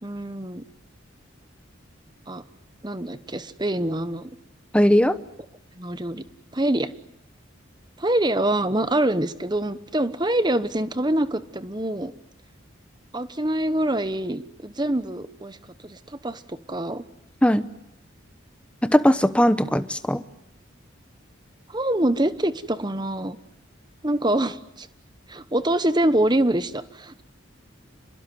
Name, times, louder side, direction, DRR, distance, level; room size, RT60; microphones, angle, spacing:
voice 1, 0.0-0.6 2.3-2.4 2.8-4.3 5.8-6.2 6.5-6.9 8.0-12.1 13.1-15.6 15.8-17.0 21.7-23.4 24.0-24.9 25.3-27.2, right 1 dB, 20° right, 12 dB, 1.1 m, -25 dB
voice 2, 4.7-5.1 17.4-17.6 18.8-20.2, equal, 5° left, 11 dB, 1.0 m, -18 dB
29.5 x 21.0 x 9.5 m, 0.81 s
head